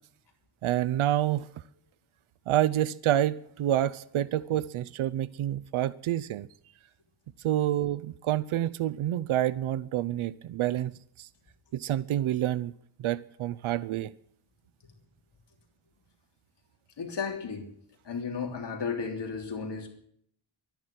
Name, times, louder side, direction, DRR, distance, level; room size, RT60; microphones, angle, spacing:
voice 1, 0.6-1.5 2.5-6.5 7.4-10.9 11.2-11.3 11.7-12.7 13.0-14.1, right 12 dB, 85° right, 0.6 m, -28 dB
voice 2, 17.0-17.7 18.1-19.9, left 5 dB, 60° left, 3.4 m, -34 dB
12.5 x 10.5 x 9.5 m
wide cardioid pair, 140°, 47 cm